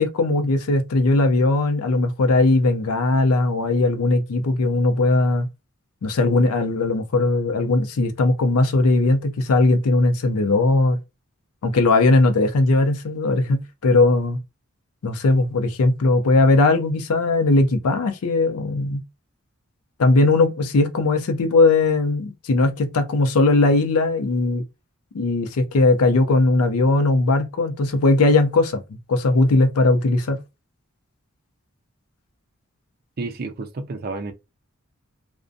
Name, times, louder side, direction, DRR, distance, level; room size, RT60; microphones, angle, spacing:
voice 1, 0.0-5.5 6.0-11.0 11.6-14.4 15.0-19.0 20.0-24.6 25.1-30.4, left 2 dB, 90° left, 0.5 m, -19 dB
voice 2, 33.2-34.3, right 3 dB, 45° right, 0.4 m, -30 dB
2.5 x 2.1 x 2.5 m
head